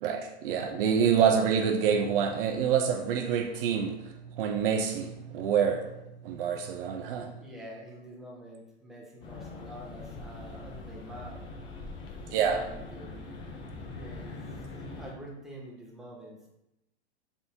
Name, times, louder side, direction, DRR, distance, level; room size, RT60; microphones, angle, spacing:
voice 1, 0.0-6.0 6.2-7.3 12.3-12.7, right 7 dB, 55° right, 5 dB, 0.5 m, -27 dB
voice 2, 7.4-11.5 12.5-13.5 13.9-14.5 15.0-16.5, equal, ahead, -4 dB, 0.7 m, -47 dB
sound 1, 9.2-15.1, left 3 dB, 15° left, 0.3 m, -42 dB
3.5 x 2.6 x 4.2 m, 0.90 s
hypercardioid pair, 120°, 34 cm